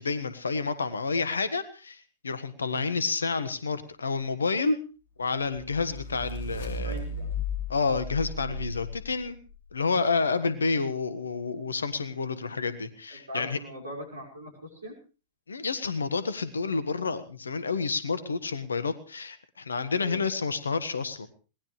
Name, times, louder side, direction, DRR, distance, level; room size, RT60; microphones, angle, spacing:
voice 1, 0.0-4.8 5.2-7.0 7.7-9.4 9.7-13.6 15.5-21.3, left 4 dB, 80° left, 13 dB, 1.5 m, -29 dB
sound 1, 5.4-9.6, left 2 dB, 60° left, 2.8 m, -35 dB
voice 2, 6.8-7.3 12.4-12.5 13.1-14.9 19.9-20.2, right 1 dB, 80° right, 1 dB, 5.8 m, -41 dB
22.0 x 19.0 x 3.3 m, 0.34 s
figure-of-eight pair, 95°, 0 cm